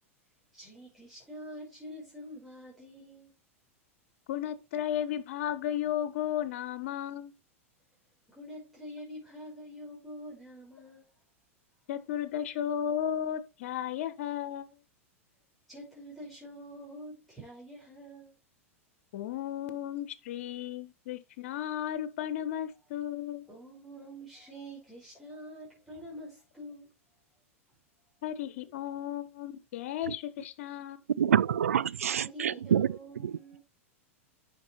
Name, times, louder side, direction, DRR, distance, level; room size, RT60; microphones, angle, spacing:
voice 1, 0.5-3.3 8.3-11.1 15.7-18.3 23.5-26.9 32.0-33.6, equal, ahead, 5.4 m, -46 dB
voice 2, 4.3-7.3 11.9-14.8 19.1-23.5 28.2-31.0, left 10 dB, 65° left, 1.3 m, -34 dB
voice 3, 31.2-32.9, right 9 dB, 80° right, 0.4 m, -26 dB
9.6 x 6.3 x 3.1 m
hypercardioid pair, 100°, 8 cm